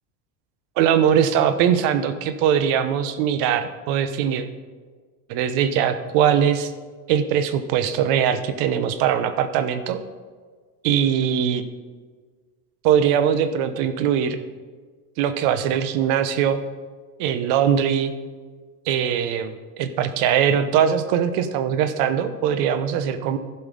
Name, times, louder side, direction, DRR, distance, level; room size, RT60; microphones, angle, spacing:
voice 1, 0.8-4.4 5.3-6.7 7.1-10.0 10.8-11.6 12.8-14.4 15.2-16.6 17.2-18.1 18.9-23.4, right 8 dB, 60° right, 11 dB, 1.0 m, -21 dB
15.0 x 5.6 x 5.3 m, 1.5 s
supercardioid pair, 135°, 48 cm